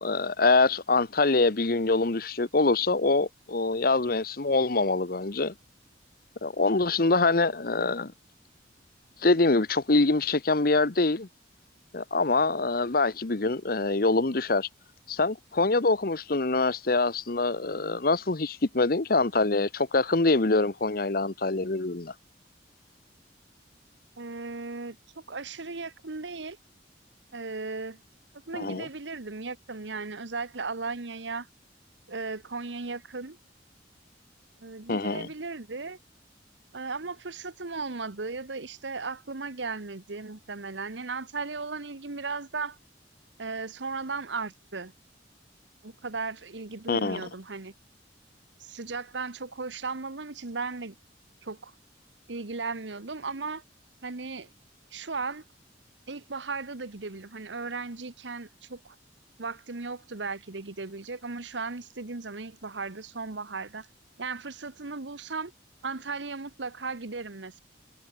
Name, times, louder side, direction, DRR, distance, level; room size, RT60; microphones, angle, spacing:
voice 1, 0.0-5.5 6.4-8.1 9.2-11.3 11.9-14.7 15.1-22.1 28.5-28.9 34.9-35.3 46.9-47.2, left 3 dB, 55° left, 1.1 m, -24 dB
voice 2, 24.2-26.6 27.3-28.0 28.5-31.5 32.1-33.4 34.6-36.0 36.7-42.8 43.4-44.9 45.8-47.7 48.6-51.0 51.4-51.7 52.3-53.6 54.0-54.5 54.9-55.4 56.1-59.0 59.4-63.9 64.2-65.5 65.8-67.6, right 4 dB, 80° right, 1.3 m, -36 dB
head